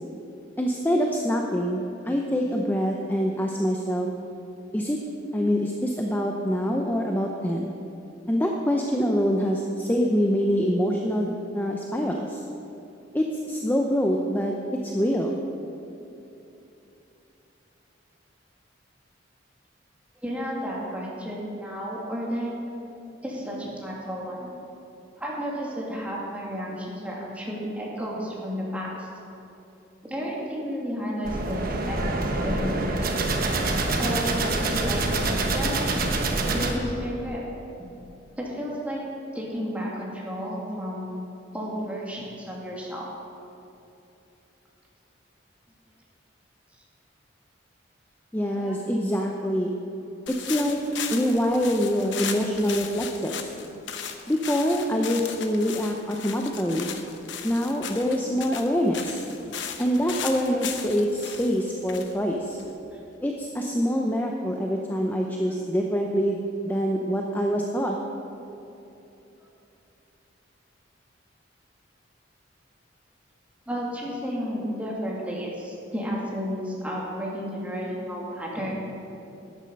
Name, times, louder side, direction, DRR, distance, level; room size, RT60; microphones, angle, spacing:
voice 1, 0.6-4.1 4.7-5.0 5.3-7.7 8.3-12.4 13.1-15.4 48.3-49.7 50.3-50.8 51.1-53.5 54.3-56.9 57.4-59.2 59.8-62.6 63.2-67.9, equal, 10° left, 1 dB, 0.6 m, -25 dB
voice 2, 20.2-22.6 23.2-24.5 25.2-29.1 30.0-32.9 34.0-35.8 36.5-37.4 38.4-39.0 39.3-41.0 41.5-43.1 48.5-48.7 62.9-63.0 65.4-65.5 73.7-78.7, equal, 5° right, -4 dB, 2.2 m, -32 dB
sound 1, 31.2-36.7, right 2 dB, 50° right, 1.2 m, -26 dB
sound 2, 50.3-63.0, left 7 dB, 70° left, 0.9 m, -37 dB
12.5 x 9.7 x 5.4 m, 2.9 s
head